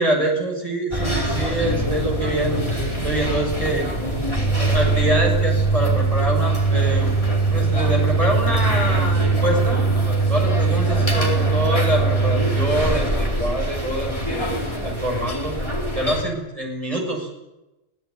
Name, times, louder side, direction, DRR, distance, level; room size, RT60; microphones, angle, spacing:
voice 1, 0.0-3.9 4.6-7.1 7.5-9.8 10.3-15.5 15.9-17.3, right 1 dB, 30° right, 1 dB, 6.7 m, -25 dB
sound 1, 0.9-16.2, right 3 dB, 25° left, 4.5 m, -21 dB
23.0 x 16.5 x 9.7 m, 1.0 s
omnidirectional pair, 1.2 m